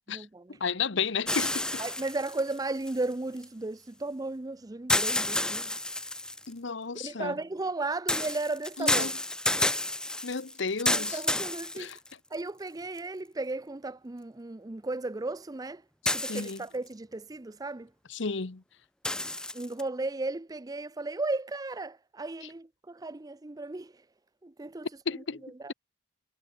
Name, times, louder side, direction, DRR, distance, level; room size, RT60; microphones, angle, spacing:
voice 1, 0.1-0.6 1.8-5.7 7.0-9.1 10.9-11.9 12.3-15.8 16.1-17.9 19.5-23.9 24.4-24.9 25.2-25.7, right 2 dB, 20° right, 0.5 m, -35 dB
voice 2, 0.6-1.8 6.5-7.3 8.8-9.1 10.2-11.2 11.7-12.0 16.3-16.6 18.1-18.6 25.1-25.4, left 5 dB, 65° left, 1.0 m, -32 dB
sound 1, 1.3-3.4 4.9-6.5 8.1-12.4 13.0-13.1 16.1-16.9 19.0-19.8, left 1 dB, 5° left, 0.9 m, -30 dB
head